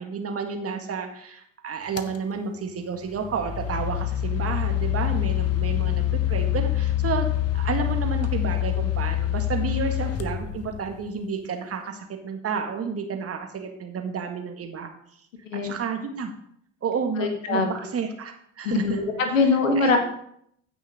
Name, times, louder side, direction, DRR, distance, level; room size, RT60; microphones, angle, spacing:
voice 1, 0.0-7.3 7.5-14.9 15.5-16.3 16.8-19.0 19.4-20.0, right 5 dB, 35° right, 4 dB, 1.9 m, -31 dB
sound 1, 2.0-2.2 3.1-11.1, left 12 dB, 40° left, 1.0 m, -26 dB
voice 2, 17.2-17.7 18.6-20.0, left 4 dB, 80° left, 5 dB, 1.7 m, -22 dB
15.0 x 6.2 x 3.7 m, 0.69 s
figure-of-eight pair, 60°, 38 cm